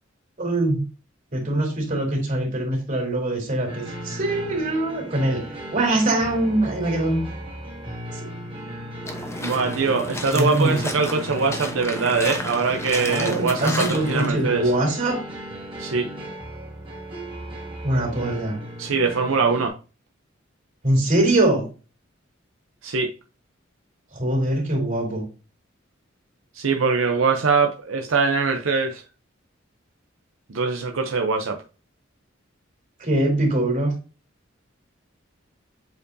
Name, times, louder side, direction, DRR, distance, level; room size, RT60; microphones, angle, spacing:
voice 1, 0.4-0.9 1.3-7.2 10.3-10.8 13.1-15.2 17.8-18.6 20.8-21.7 24.1-25.2 33.0-34.0, right 1 dB, 40° right, -1 dB, 3.3 m, -23 dB
sound 1, 3.7-19.7, equal, 25° right, 2.1 m, -36 dB
sound 2, 9.0-14.3, left 1 dB, 15° left, 0.9 m, -32 dB
voice 2, 9.4-14.6 15.8-16.1 18.8-19.7 22.8-23.1 26.5-29.0 30.5-31.6, right 4 dB, 80° right, 4 dB, 0.7 m, -22 dB
8.0 x 4.5 x 2.7 m, 0.33 s
head